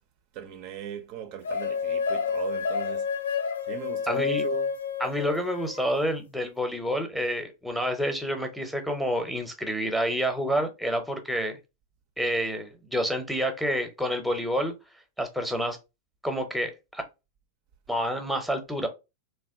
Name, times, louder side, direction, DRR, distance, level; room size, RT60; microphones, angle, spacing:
voice 1, 0.3-3.1 3.6-4.7, right 9 dB, 45° right, 0.4 m, -38 dB
sound 1, 1.4-5.9, left 6 dB, 65° left, 0.3 m, -29 dB
voice 2, 4.1-4.4 5.0-11.6 12.2-14.7 15.2-15.8 16.2-17.0 17.9-18.9, equal, ahead, 0.6 m, -28 dB
2.8 x 2.1 x 2.6 m
figure-of-eight pair, 90°, 0 cm